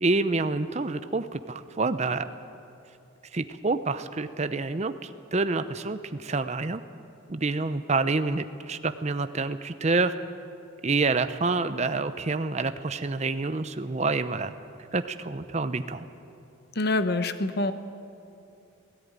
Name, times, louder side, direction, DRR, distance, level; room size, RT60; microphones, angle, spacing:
voice 1, 0.0-2.3 3.3-6.8 7.3-10.1 10.8-14.5 14.9-16.1, right 3 dB, 35° right, 11 dB, 0.6 m, -27 dB
voice 2, 16.8-17.7, left 2 dB, 50° left, 11 dB, 1.0 m, -25 dB
17.5 x 17.5 x 9.5 m, 2.7 s
head